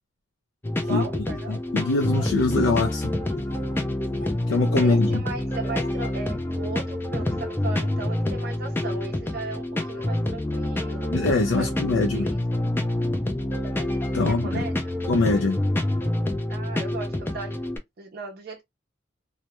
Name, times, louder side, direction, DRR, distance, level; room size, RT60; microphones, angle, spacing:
sound 1, 0.6-17.8, left 1 dB, 10° left, 0.4 m, -27 dB
voice 1, 0.8-1.6 4.8-11.1 11.6-11.7 12.0-12.4 14.2-15.0 16.5-17.6 18.0-18.6, right 3 dB, 50° right, 0.5 m, -37 dB
Laughter, 1.3-5.1 5.6-6.1, left 1 dB, 40° left, 0.7 m, -42 dB
voice 2, 1.5-3.1 4.5-5.2 11.1-12.3 14.1-14.6 15.1-15.6, left 3 dB, 75° left, 0.4 m, -23 dB
2.2 x 2.1 x 2.8 m
head